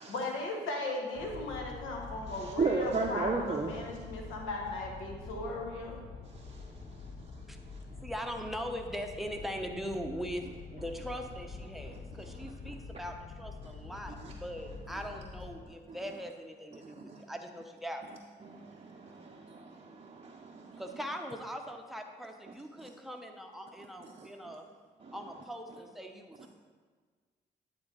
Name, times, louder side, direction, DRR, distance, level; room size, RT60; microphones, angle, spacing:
voice 1, 0.1-6.0, left 2 dB, 70° left, 1 dB, 1.1 m, -37 dB
sound 1, 1.1-15.6, left 4 dB, 45° left, 0.8 m, -46 dB
voice 2, 2.3-3.7 6.3-8.0 11.8-12.7 13.6-13.7 14.1-14.7 15.9-16.0 16.7-17.2 18.4-20.8 22.8-22.9 24.0-24.5 25.0-25.2 26.4-26.5, right 4 dB, 30° right, 0 dB, 0.6 m, -37 dB
voice 3, 8.0-18.0 20.8-24.7 25.1-26.5, equal, ahead, 4 dB, 0.9 m, -41 dB
9.5 x 4.0 x 3.9 m, 1.5 s
hypercardioid pair, 40°, 21 cm